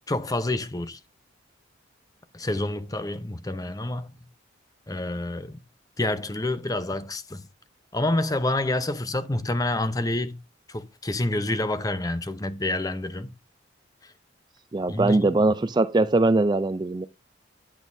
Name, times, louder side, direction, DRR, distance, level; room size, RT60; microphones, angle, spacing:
voice 1, 0.1-1.0 2.3-4.2 4.9-5.6 6.0-7.4 7.9-10.4 10.7-13.3 14.0-14.1 14.9-15.2, left 2 dB, 20° left, 0.6 m, -28 dB
voice 2, 14.7-17.1, right 2 dB, 20° right, 0.3 m, -21 dB
9.1 x 8.1 x 2.6 m
head